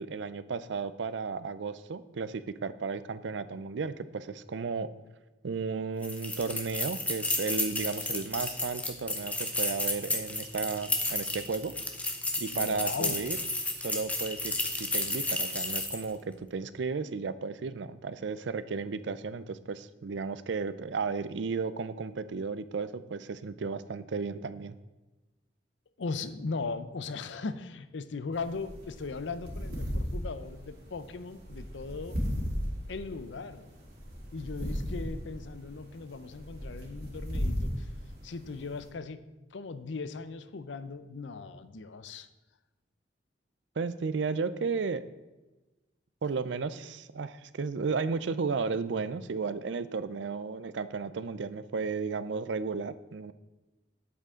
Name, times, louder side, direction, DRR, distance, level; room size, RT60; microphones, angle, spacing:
voice 1, 0.0-4.9 5.4-11.7 12.4-13.4 13.8-24.8 43.8-45.0 46.2-53.3, right 4 dB, 70° right, 14 dB, 0.5 m, -34 dB
sound 1, 6.0-16.1, left 2 dB, 10° left, 0.9 m, -32 dB
voice 2, 12.5-13.2 26.0-32.2 32.9-33.7 34.3-37.9 38.2-39.2 39.5-42.3, left 4 dB, 75° left, 12 dB, 0.6 m, -38 dB
sound 2, 28.3-38.9, equal, 55° right, 3.1 m, -36 dB
9.2 x 8.0 x 3.7 m, 1.1 s
head